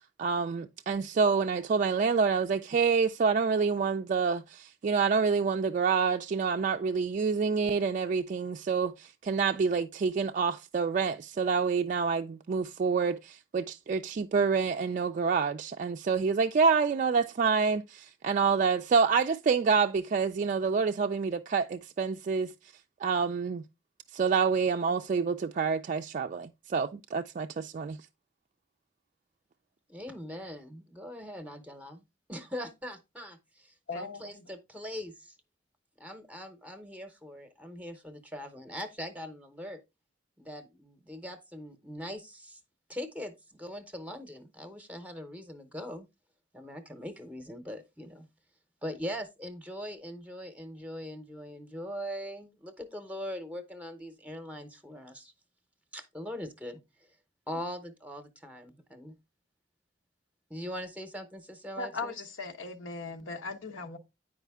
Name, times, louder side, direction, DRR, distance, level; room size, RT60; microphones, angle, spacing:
voice 1, 0.2-22.5 23.0-23.6 24.1-28.0, right 5 dB, 40° right, 0.3 m, -27 dB
voice 2, 29.9-32.0 32.3-35.3 36.0-39.8 40.4-42.6 42.9-46.1 46.5-48.3 48.8-55.3 55.9-56.8 57.5-59.1 60.5-62.1, equal, 5° right, 0.8 m, -41 dB
voice 3, 33.9-34.4 61.8-64.0, left 3 dB, 85° left, 1.1 m, -38 dB
9.1 x 4.9 x 3.5 m
head